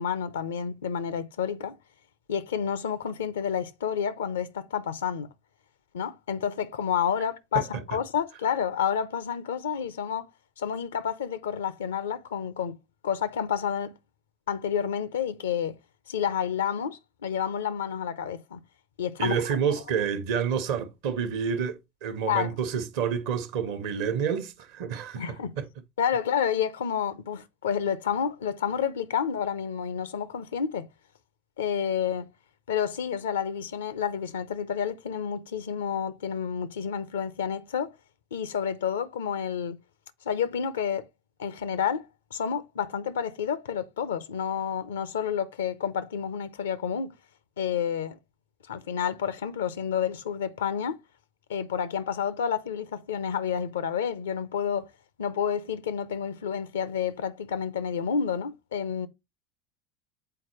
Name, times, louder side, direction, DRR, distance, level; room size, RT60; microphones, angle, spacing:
voice 1, 0.0-1.8 2.3-5.3 5.9-10.3 10.6-12.8 13.0-14.0 14.5-15.7 16.1-18.6 19.0-19.7 22.3-22.6 25.2-25.6 26.0-30.9 31.6-32.3 32.7-37.9 38.3-39.8 40.3-41.1 41.4-47.1 47.6-48.2 48.7-51.0 51.5-54.9 55.2-59.1, left 8 dB, 70° left, 0.7 m, -29 dB
voice 2, 19.2-25.6, right 7 dB, 60° right, 1.1 m, -29 dB
7.8 x 4.4 x 3.0 m
figure-of-eight pair, 70°, 0 cm